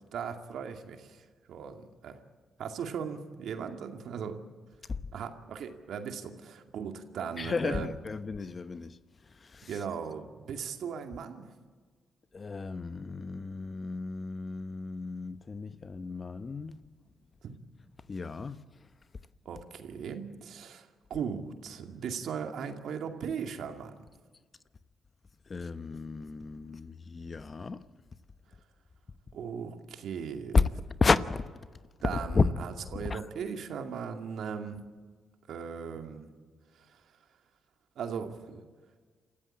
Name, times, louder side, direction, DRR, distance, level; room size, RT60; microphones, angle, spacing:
voice 1, 0.0-2.2 2.6-4.4 5.1-7.9 9.6-11.5 17.4-17.5 19.5-23.9 29.3-30.6 32.0-32.4 32.9-34.9 35.5-36.3 36.8-37.0 38.0-38.6, right 7 dB, 70° right, 2.3 m, -38 dB
voice 2, 7.4-9.8 12.3-16.9 18.0-18.9 25.4-27.9 30.5-31.5 32.1-33.3, left 4 dB, 40° left, 0.9 m, -32 dB
27.5 x 15.0 x 8.6 m
supercardioid pair, 60°, 0 cm